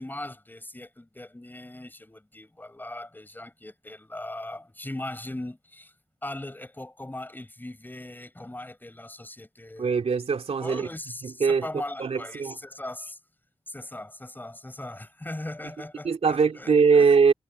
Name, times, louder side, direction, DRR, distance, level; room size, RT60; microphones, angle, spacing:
voice 1, 0.0-5.9 6.2-10.0 10.5-13.2 13.7-16.7 17.0-17.1, left 1 dB, 20° left, 7.2 m, -39 dB
voice 2, 9.8-10.9 11.2-11.7 12.0-12.6 16.0-17.3, right 5 dB, 85° right, 2.8 m, -21 dB
wide cardioid pair, 80°, 10 cm